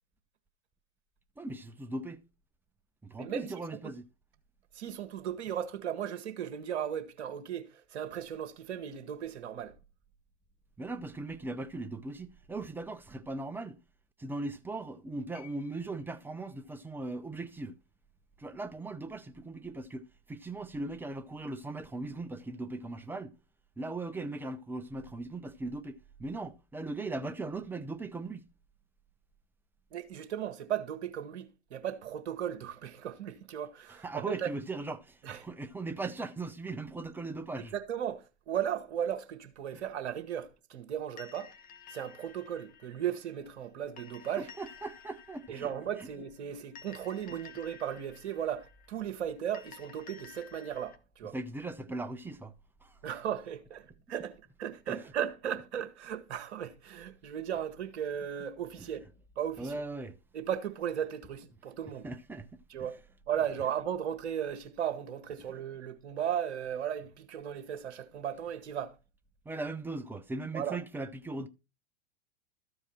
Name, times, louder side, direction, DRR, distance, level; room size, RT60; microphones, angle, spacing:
voice 1, 1.4-2.3 3.0-4.0 10.8-13.8 14.2-17.8 18.4-23.3 23.8-28.5 33.9-37.7 39.7-39.8 44.4-45.7 46.0-46.1 51.3-52.5 52.8-53.0 54.9-55.0 58.8-58.9 59.6-60.2 62.0-62.9 69.5-71.5, right 2 dB, 5° right, 0.5 m, -39 dB
voice 2, 3.2-3.5 4.7-9.7 29.9-34.5 35.2-35.4 37.7-41.5 41.9-44.5 45.5-51.4 53.0-59.1 59.4-59.8 60.3-62.1 62.7-63.0 63.3-69.0 70.5-70.8, right 9 dB, 65° right, 1.4 m, -36 dB
sound 1, 15.3-19.5 20.7-20.8, left 10 dB, 45° left, 6.3 m, -62 dB
sound 2, 41.2-51.0, left 7 dB, 25° left, 1.0 m, -53 dB
13.0 x 4.8 x 4.3 m
figure-of-eight pair, 100°, 36 cm